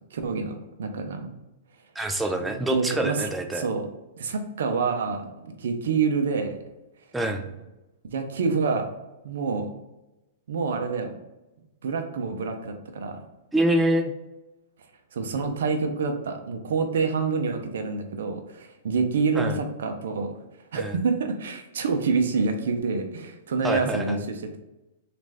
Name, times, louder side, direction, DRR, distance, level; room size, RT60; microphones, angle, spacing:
voice 1, 0.1-1.3 2.4-3.3 3.6-3.9 4.2-6.6 8.1-8.8 9.2-9.7 10.5-11.1 11.8-13.2 15.1-20.3 20.7-24.6, right 4 dB, 75° right, 5 dB, 0.6 m, -27 dB
voice 2, 2.0-3.7 7.1-7.5 13.5-14.1 19.4-19.6 20.7-21.0 23.6-24.2, right 1 dB, 5° right, 5 dB, 0.4 m, -25 dB
3.2 x 2.5 x 3.4 m, 0.99 s
hypercardioid pair, 135°, 0 cm